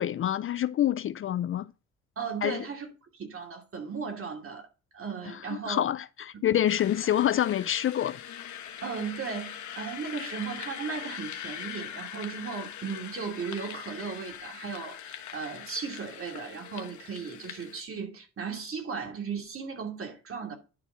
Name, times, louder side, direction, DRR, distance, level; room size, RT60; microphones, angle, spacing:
voice 1, 0.0-1.7 2.4-2.6 5.5-8.2, left 11 dB, 45° left, 0.4 m, -27 dB
voice 2, 2.2-4.7 4.9-5.8 7.0-7.1 8.8-20.5, right 5 dB, 45° right, 2.6 m, -36 dB
sound 1, 6.7-17.8, left 10 dB, 70° left, 1.2 m, -42 dB
11.0 x 4.1 x 5.4 m
cardioid pair, 90°, 30 cm